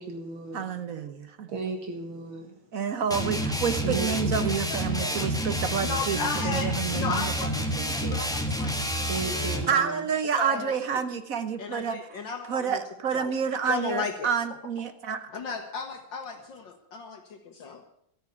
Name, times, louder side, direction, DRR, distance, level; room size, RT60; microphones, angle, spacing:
voice 1, 0.0-0.7 1.5-2.5 3.8-4.6 5.1-5.7 9.1-10.1, right 4 dB, 70° right, 4 dB, 2.6 m, -36 dB
voice 2, 0.5-1.6 2.7-7.3 7.6-8.2 9.7-12.0 12.5-15.3, right 7 dB, 55° right, 10 dB, 1.0 m, -29 dB
sound 1, 3.1-9.7, equal, ahead, 1.1 m, -29 dB
voice 3, 4.7-9.2 9.7-9.9 10.4-11.0 11.6-12.8 13.1-13.3 13.7-14.3 15.3-17.9, left 5 dB, 65° left, 4 dB, 1.9 m, -35 dB
13.0 x 9.3 x 8.3 m, 0.72 s
omnidirectional pair, 2.3 m